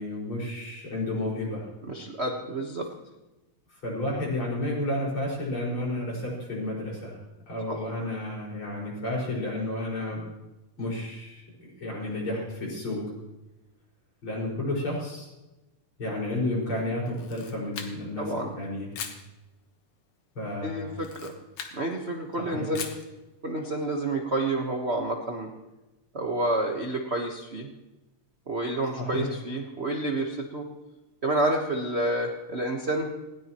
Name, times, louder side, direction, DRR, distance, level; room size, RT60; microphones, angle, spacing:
voice 1, 0.0-1.7 3.7-7.2 7.5-10.2 10.8-11.4 11.8-13.1 14.2-15.3 16.0-18.3 18.5-19.0 20.4-21.0 22.4-22.7 29.0-29.3, left 1 dB, 45° left, -4 dB, 6.2 m, -31 dB
voice 2, 1.8-2.9 7.7-7.8 18.2-18.6 20.6-21.3 21.7-22.9 23.4-25.5 26.1-27.7 28.5-30.7 31.2-33.1, right 2 dB, 60° right, 1 dB, 0.6 m, -29 dB
Camera, 17.1-18.2 18.9-19.3 20.9-21.8 22.7-23.1, left 7 dB, 85° left, 2.8 m, -39 dB
19.5 x 17.5 x 3.1 m, 1.0 s
omnidirectional pair, 3.4 m